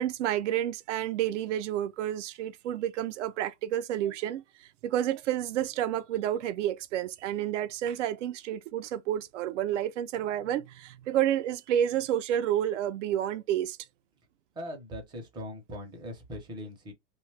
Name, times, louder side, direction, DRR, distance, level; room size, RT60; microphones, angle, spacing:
voice 1, 0.0-13.8, right 11 dB, 80° right, 0.6 m, -30 dB
voice 2, 14.5-16.9, equal, 15° right, 0.5 m, -40 dB
2.8 x 2.2 x 3.2 m
supercardioid pair, 165°, 36 cm